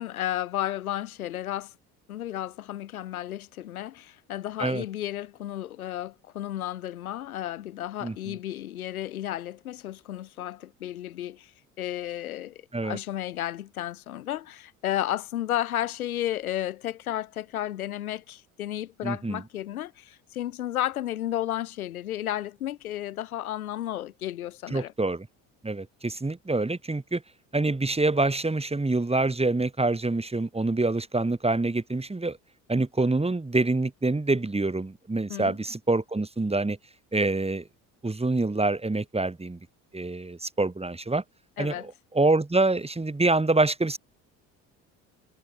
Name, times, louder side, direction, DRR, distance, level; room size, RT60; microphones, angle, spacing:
voice 1, 0.0-1.7 2.1-11.5 11.8-24.9 35.3-35.6 41.6-41.9, left 13 dB, 80° left, 6.9 m, -33 dB
voice 2, 8.0-8.4 12.7-13.0 19.0-19.4 24.7-25.3 25.6-27.2 27.5-32.4 32.7-36.8 37.1-37.7 38.0-39.6 39.9-41.2 41.6-44.0, right 2 dB, 15° right, 5.9 m, -26 dB
hypercardioid pair, 60°, 42 cm